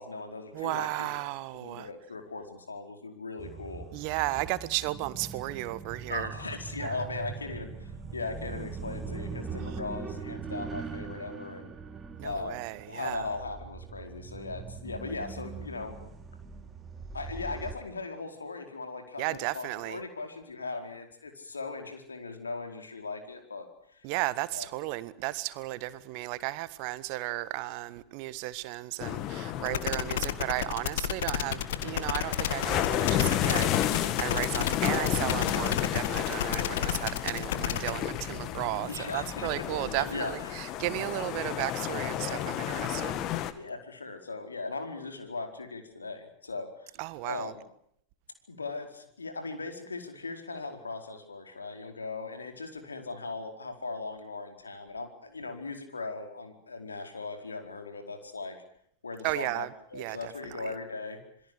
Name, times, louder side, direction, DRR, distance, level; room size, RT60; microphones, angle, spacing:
voice 1, 0.0-1.2 1.5-3.9 6.1-11.7 12.2-12.6 12.9-16.0 17.1-23.7 23.9-24.0 24.5-24.6 38.9-39.5 39.8-40.8 43.5-46.9 47.2-47.6 48.5-58.6 59.0-59.7 59.9-61.2, left 3 dB, 75° left, 4.6 m, -38 dB
voice 2, 0.5-1.9 3.9-6.3 6.8-7.0 9.6-9.8 12.2-13.3 19.2-20.0 24.0-43.2 47.0-47.5 59.2-60.3 60.6-60.7, right 18 dB, 45° right, 1.6 m, -34 dB
sound 1, 3.4-17.7, right 5 dB, 15° right, 3.9 m, -41 dB
sound 2, 29.0-43.5, left 11 dB, 35° left, 1.9 m, -32 dB
sound 3, 29.7-37.9, left 11 dB, 55° left, 1.7 m, -31 dB
27.5 x 22.0 x 6.6 m
figure-of-eight pair, 90°, 0 cm